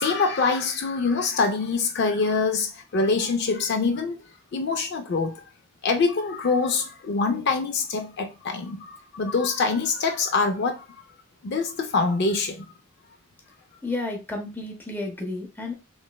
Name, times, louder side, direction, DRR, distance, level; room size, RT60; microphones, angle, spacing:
voice 1, 0.0-4.2 4.5-5.4 5.8-11.1 11.4-12.7, left 4 dB, 50° left, 0.4 m, -25 dB
voice 2, 13.8-15.7, left 2 dB, 10° left, 0.6 m, -31 dB
3.2 x 3.1 x 2.2 m
head